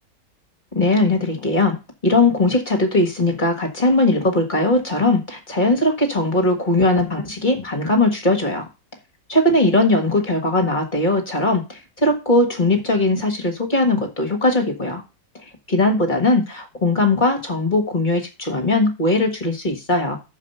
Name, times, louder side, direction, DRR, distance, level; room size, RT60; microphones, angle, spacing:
voice 1, 0.7-1.8 2.0-8.7 9.3-15.0 15.7-20.2, left 2 dB, 30° left, 4 dB, 1.6 m, -19 dB
6.5 x 4.9 x 6.7 m, 0.28 s
omnidirectional pair, 1.8 m